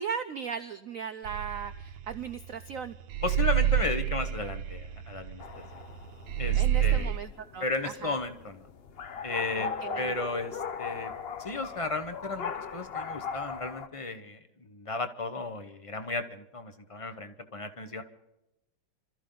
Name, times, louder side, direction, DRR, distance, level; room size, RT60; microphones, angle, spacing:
voice 1, 0.0-2.9 6.5-8.2 9.6-10.1, right 7 dB, 70° right, 9 dB, 0.8 m, -37 dB
sound 1, 1.3-2.7 3.1-6.0 6.3-7.2, right 10 dB, 85° right, 1.6 m, -27 dB
voice 2, 3.2-5.4 6.4-7.1 7.6-8.6 9.2-11.1 11.4-14.4 14.7-18.0, left 3 dB, 35° left, 9 dB, 0.5 m, -34 dB
sound 2, 5.4-13.9, left 6 dB, 80° left, 0.5 m, -39 dB
26.5 x 14.0 x 3.9 m, 0.90 s
omnidirectional pair, 2.1 m